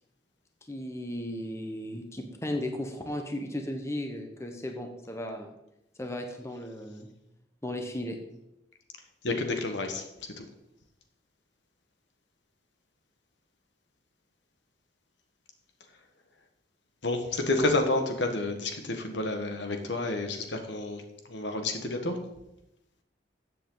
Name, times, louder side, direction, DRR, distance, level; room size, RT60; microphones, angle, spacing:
voice 1, 0.7-5.5 6.0-7.1 7.6-8.2, left 1 dB, 15° left, 4 dB, 1.0 m, -35 dB
voice 2, 9.2-10.0 10.4-10.5 17.0-21.0 21.3-22.2, left 2 dB, 75° left, 5 dB, 1.6 m, -29 dB
14.0 x 7.7 x 4.0 m, 0.88 s
head